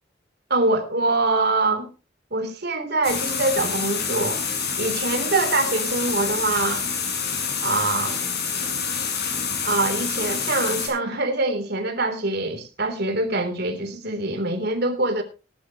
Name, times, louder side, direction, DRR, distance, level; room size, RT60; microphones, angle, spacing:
voice 1, 0.5-1.9 2.3-4.4 4.8-6.9 7.6-8.2 9.6-15.2, right 2 dB, 55° right, 3.4 m, -24 dB
Water running down the bath tub (medium), 3.0-10.9, left 6 dB, 55° left, 6.8 m, -27 dB
20.0 x 11.5 x 3.0 m
head